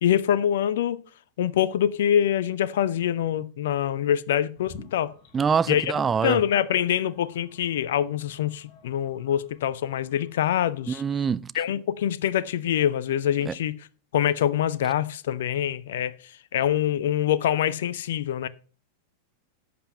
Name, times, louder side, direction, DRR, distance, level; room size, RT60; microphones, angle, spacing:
voice 1, 0.0-1.0 1.4-5.1 5.7-5.9 6.2-11.0 11.5-13.8 14.1-16.1 16.5-18.5, left 10 dB, 60° left, 0.6 m, -25 dB
sound 1, 4.5-11.0, left 4 dB, 40° left, 3.9 m, -52 dB
voice 2, 5.3-6.4 10.9-11.5 13.5-13.6, right 6 dB, 20° right, 0.4 m, -24 dB
11.5 x 7.8 x 5.4 m
figure-of-eight pair, 90°, 0 cm